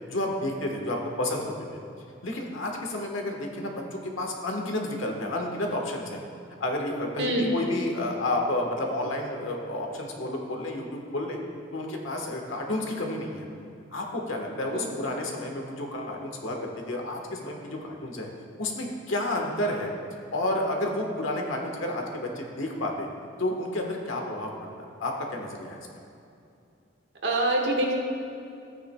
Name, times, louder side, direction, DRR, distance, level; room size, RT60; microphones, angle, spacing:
voice 1, 0.1-1.5 2.2-6.2 6.6-11.4 11.7-13.5 13.9-18.3 18.6-19.9 20.3-23.1 23.4-24.5 25.0-25.8, left 1 dB, 85° left, 1 dB, 1.3 m, -30 dB
voice 2, 27.2-27.9, right 1 dB, 60° right, 0 dB, 1.4 m, -25 dB
13.5 x 9.2 x 2.3 m, 2.5 s
head